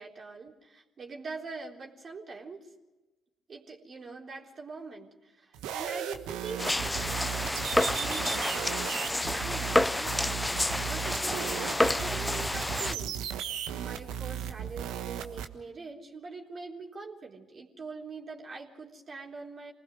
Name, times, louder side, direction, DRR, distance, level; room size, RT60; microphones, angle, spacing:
voice 1, 0.0-2.7 3.5-10.2 10.8-13.2 13.7-19.7, right 4 dB, 45° right, 0 dB, 3.7 m, -43 dB
sound 1, 5.5-15.5, right 9 dB, 70° right, 1.3 m, -36 dB
sound 2, 6.6-12.9, left 1 dB, 10° left, 0.7 m, -29 dB
27.5 x 19.5 x 5.0 m, 1.1 s
hypercardioid pair, 50°, 0 cm